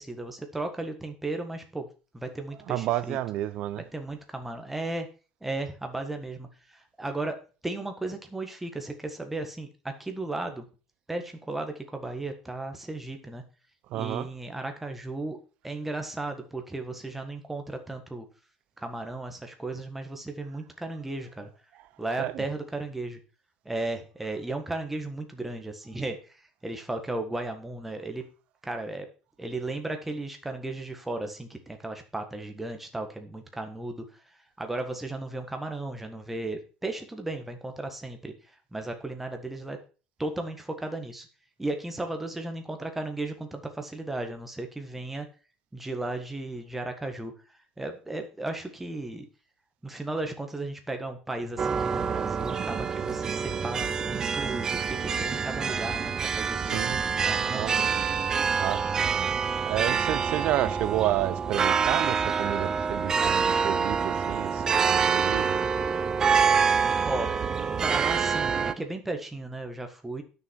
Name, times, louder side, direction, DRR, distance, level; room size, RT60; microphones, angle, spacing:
voice 1, 0.0-1.9 2.1-3.2 3.9-5.1 5.4-10.6 11.1-13.4 13.9-15.4 15.6-18.2 18.8-21.5 22.0-23.2 23.6-28.2 28.6-29.1 29.4-39.8 40.2-41.3 41.6-45.3 45.7-49.3 49.8-57.7 60.6-60.8 67.0-67.3 67.8-70.2, right 2 dB, 5° right, 1.6 m, -35 dB
voice 2, 2.7-3.8 13.9-14.3 22.2-22.4 56.6-57.0 57.5-58.0 58.6-59.0 59.7-65.6, right 14 dB, 55° right, 0.8 m, -30 dB
sound 1, 51.6-68.7, right 6 dB, 25° right, 0.6 m, -26 dB
11.0 x 6.8 x 4.6 m
cardioid pair, 145°, 2 cm